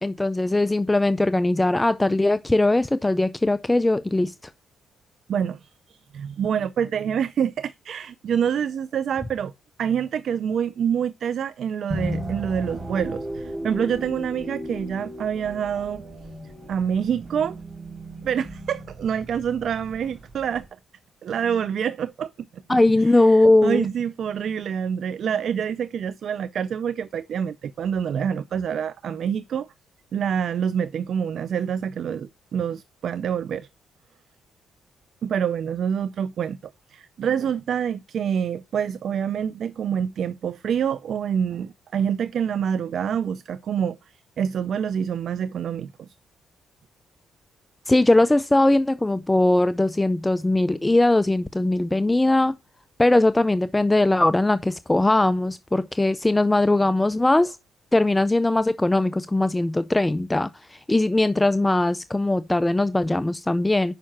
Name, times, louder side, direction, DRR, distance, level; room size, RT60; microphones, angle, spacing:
voice 1, 0.0-4.5 22.7-23.9 47.9-52.5 53.0-57.6 57.9-64.0, left 2 dB, 10° left, 0.4 m, -20 dB
voice 2, 5.3-9.5 9.8-16.0 16.7-17.6 18.2-20.7 21.2-23.4 23.6-29.7 30.1-33.7 35.2-44.0 44.4-46.1, right 8 dB, 60° right, 0.4 m, -26 dB
sound 1, 11.9-20.7, right 1 dB, 25° right, 3.7 m, -35 dB
6.5 x 5.6 x 5.9 m
cardioid pair, 90°, 0 cm